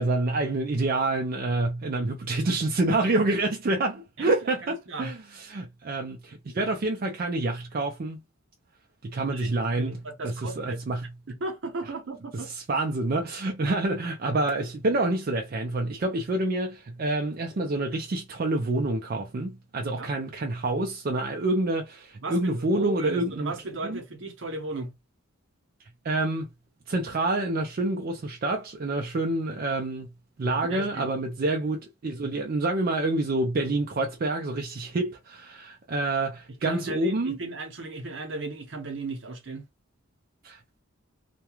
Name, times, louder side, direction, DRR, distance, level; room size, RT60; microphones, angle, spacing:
voice 1, 0.0-8.2 9.0-11.1 12.3-23.5 23.8-24.0 26.0-26.5 26.9-30.1 30.4-37.4 40.4-40.8, right 2 dB, 45° right, 0.4 m, -27 dB
voice 2, 4.6-5.1 9.3-10.8 11.3-12.5 20.0-20.1 22.2-24.9 30.7-31.1 36.6-39.6, right 2 dB, 65° right, 0.8 m, -35 dB
2.3 x 2.2 x 2.9 m
head